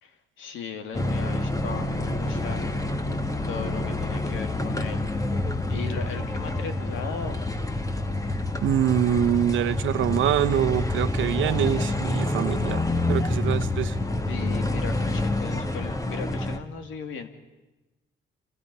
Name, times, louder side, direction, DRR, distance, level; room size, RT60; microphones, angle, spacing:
voice 1, 0.0-2.6 3.4-5.1 5.7-7.4 14.3-17.3, left 5 dB, 80° left, 6 dB, 2.7 m, -37 dB
sound 1, 0.9-16.6, left 2 dB, 15° left, 1.8 m, -27 dB
voice 2, 8.6-12.8 13.1-13.9, right 10 dB, 80° right, 12 dB, 1.1 m, -24 dB
30.0 x 26.5 x 5.6 m, 1.1 s
cardioid pair, 90°, 20 cm